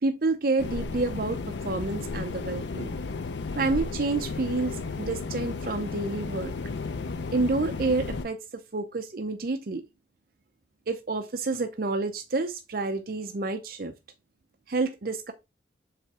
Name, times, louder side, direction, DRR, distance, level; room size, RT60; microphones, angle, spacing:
voice 1, 0.0-2.9 3.5-6.5 7.3-9.8 10.9-13.9 14.7-15.3, right 3 dB, 50° right, 0.6 m, -29 dB
sound 1, 0.6-8.2, left 4 dB, 75° left, 0.5 m, -34 dB
7.5 x 3.4 x 4.2 m
head